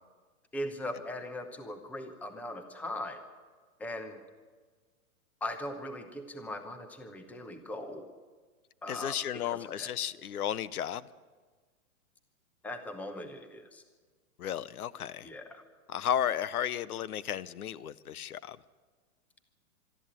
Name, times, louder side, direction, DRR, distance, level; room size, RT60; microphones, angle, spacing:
voice 1, 0.5-3.2 3.8-4.2 5.4-8.1 8.8-9.2 9.4-9.9 12.6-13.8 15.2-15.6, left 1 dB, 5° left, 8 dB, 0.9 m, -39 dB
voice 2, 8.9-11.1 14.4-15.3 15.9-18.6, left 10 dB, 85° left, 18 dB, 0.9 m, -33 dB
22.5 x 13.0 x 8.9 m, 1.5 s
hypercardioid pair, 150°, 43 cm